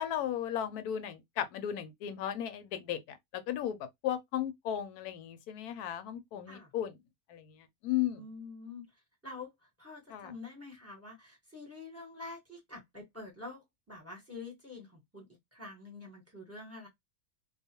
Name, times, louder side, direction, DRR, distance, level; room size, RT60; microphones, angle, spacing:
voice 1, 0.0-3.8 4.0-7.0 7.3-7.6 7.8-8.2 10.1-10.3, left 11 dB, 80° left, 1.1 m, -35 dB
voice 2, 8.2-8.8 9.2-9.5 9.8-16.9, left 3 dB, 10° right, 0.9 m, -47 dB
2.4 x 2.3 x 2.7 m
omnidirectional pair, 1.6 m